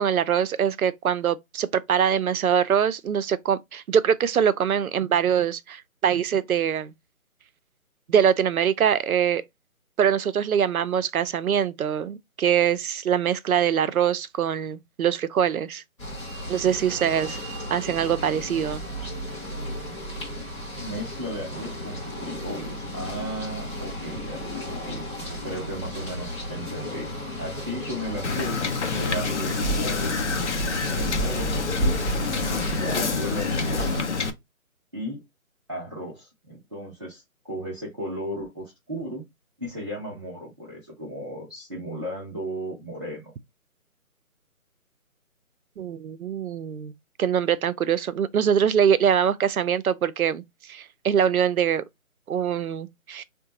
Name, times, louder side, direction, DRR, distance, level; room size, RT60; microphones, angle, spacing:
voice 1, 0.0-6.9 8.1-9.4 10.0-15.8 16.5-17.4 17.7-18.8 45.8-46.9 47.2-50.4 50.7-51.8 52.3-53.2, right 8 dB, 80° right, 0.5 m, -23 dB
sound 1, 16.0-34.0, equal, 20° left, 0.8 m, -33 dB
voice 2, 20.8-24.4 24.8-25.0 25.4-27.1 27.4-30.1 30.9-32.3 32.7-34.2 34.9-35.2 35.7-39.2 39.6-43.3, equal, 20° right, 0.6 m, -35 dB
Wind / Boat Water vehicle, 28.2-34.3, left 4 dB, 55° left, 0.6 m, -27 dB
3.7 x 2.2 x 2.7 m
figure-of-eight pair, 160°, 42 cm